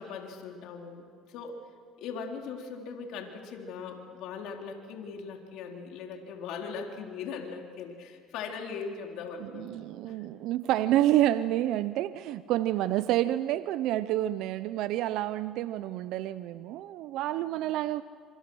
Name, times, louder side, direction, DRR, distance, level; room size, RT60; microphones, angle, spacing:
voice 1, 0.0-1.6 2.0-10.2, left 5 dB, 75° left, 2 dB, 3.5 m, -40 dB
voice 2, 9.4-18.0, right 13 dB, 75° right, 14 dB, 0.6 m, -28 dB
26.0 x 25.5 x 6.3 m, 2.2 s
supercardioid pair, 95°, 0 cm